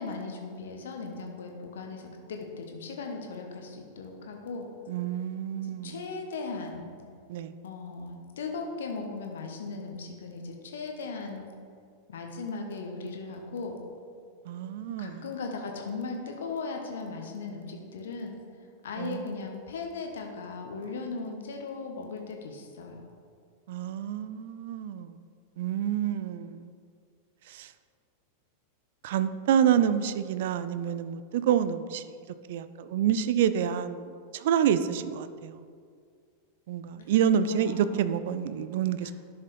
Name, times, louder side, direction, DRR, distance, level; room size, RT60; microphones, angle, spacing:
voice 1, 0.0-4.7 5.6-6.9 7.6-11.5 12.1-13.8 15.0-18.4 18.8-23.0 37.5-38.0 39.0-39.1, left 4 dB, 60° left, 2 dB, 0.9 m, -37 dB
voice 2, 4.9-6.0 7.3-7.5 14.5-15.2 19.0-19.4 23.7-25.2 25.6-26.7 27.5-27.7 29.0-32.1 32.5-35.6 36.7-39.1, right 9 dB, 55° right, 12 dB, 0.4 m, -28 dB
11.0 x 6.1 x 3.3 m, 2.1 s
figure-of-eight pair, 90°, 0 cm